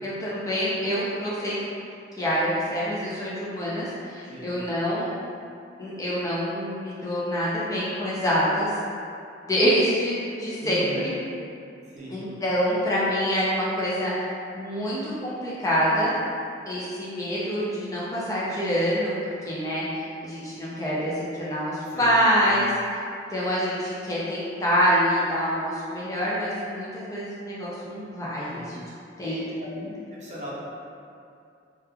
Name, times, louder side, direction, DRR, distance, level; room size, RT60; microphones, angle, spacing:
voice 1, 0.0-1.6 2.2-5.1 5.8-8.7 9.5-11.1 12.1-14.1 14.5-16.1 16.7-19.1 19.5-22.7 23.3-28.8 29.2-29.4 29.7-29.9, equal, 20° left, -8 dB, 0.4 m, -26 dB
voice 2, 10.6-11.1 11.9-12.2 21.9-22.6 28.5-28.7 29.2-29.7 30.1-30.5, equal, 40° right, -7 dB, 0.5 m, -37 dB
2.8 x 2.3 x 2.2 m, 2.5 s
head